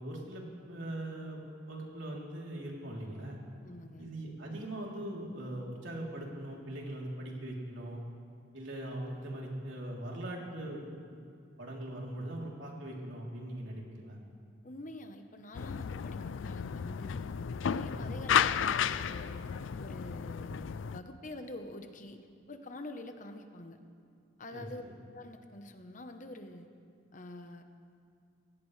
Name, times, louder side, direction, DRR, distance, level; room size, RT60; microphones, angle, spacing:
voice 1, 0.0-3.4 4.0-8.0 8.5-11.2 11.6-14.2 17.9-18.1 24.5-25.0, right 1 dB, 80° right, -3 dB, 3.3 m, -41 dB
voice 2, 3.6-4.1 14.6-17.2 17.6-19.5 19.8-23.8 24.4-24.8 25.1-26.7 27.1-27.6, left 1 dB, 40° left, 6 dB, 1.0 m, -46 dB
sound 1, 15.5-21.0, left 8 dB, 80° left, 0.4 m, -33 dB
25.5 x 17.0 x 3.3 m, 2.3 s
head